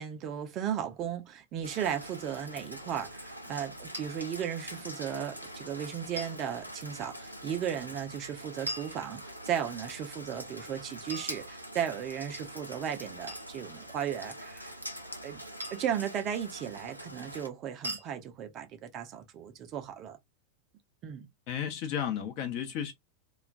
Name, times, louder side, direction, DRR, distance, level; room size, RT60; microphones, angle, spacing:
voice 1, 0.0-14.7 15.2-15.4 15.7-20.2 21.0-21.3, right 9 dB, 35° right, 0.5 m, -35 dB
Rain, 1.6-17.5, equal, 90° left, 0.4 m, -44 dB
sound 1, 3.9-4.1 6.2-6.4 8.7-9.6 11.1-12.0 13.3-13.6 15.6-16.0 17.8-18.1, equal, 75° right, 0.9 m, -40 dB
voice 2, 21.5-22.9, left 9 dB, 45° left, 0.7 m, -33 dB
2.2 x 2.2 x 2.5 m
figure-of-eight pair, 90°, 0 cm